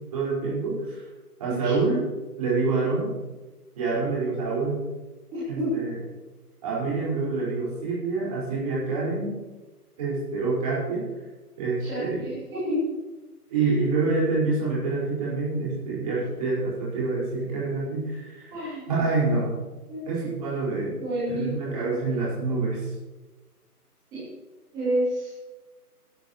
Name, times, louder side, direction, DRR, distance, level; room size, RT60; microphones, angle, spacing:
voice 1, 0.1-1.0 1.4-2.1 2.4-3.1 3.7-4.8 5.5-6.0 6.6-9.3 10.0-11.0 11.6-12.2 13.5-18.5 18.9-19.5 20.0-21.0 21.3-22.9, right 3 dB, 25° right, -7 dB, 5.1 m, -26 dB
voice 2, 5.3-5.7 11.8-12.8 13.5-13.7 18.5-18.9 19.9-20.1 21.0-22.0 24.1-24.2 24.7-25.3, right 1 dB, 10° right, -12 dB, 3.5 m, -30 dB
17.5 x 12.0 x 3.1 m, 1.2 s
figure-of-eight pair, 160°, 47 cm